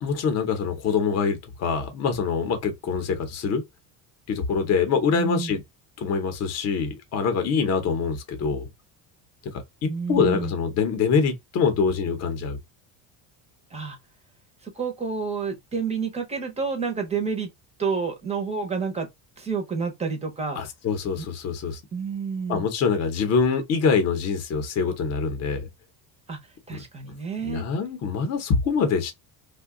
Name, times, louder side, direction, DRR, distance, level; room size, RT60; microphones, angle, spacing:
voice 1, 0.0-3.6 4.3-5.6 6.0-8.6 9.5-12.6 20.6-21.8 22.5-25.7 26.7-26.8 27.4-29.1, left 5 dB, 35° left, 0.7 m, -24 dB
voice 2, 5.1-5.5 9.9-10.5 13.7-14.0 14.6-17.5 17.8-19.1 19.4-20.6 21.2-21.3 21.9-22.7 26.3-26.4 26.7-27.6, right 5 dB, 15° right, 0.5 m, -29 dB
2.6 x 2.2 x 3.6 m
cardioid pair, 165°, 44 cm